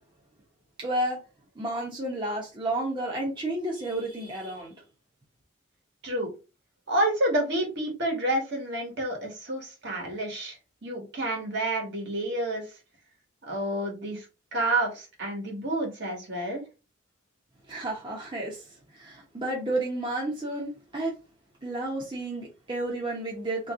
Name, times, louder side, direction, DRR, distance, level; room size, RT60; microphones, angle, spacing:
voice 1, 0.8-1.2 1.6-4.7 17.7-18.6 18.9-21.1 21.6-23.7, right 1 dB, 25° right, 1.0 m, -31 dB
voice 2, 6.9-10.6 10.8-12.7 13.5-14.3 14.5-16.6, right 1 dB, 60° right, 1.7 m, -29 dB
3.2 x 3.2 x 3.7 m
head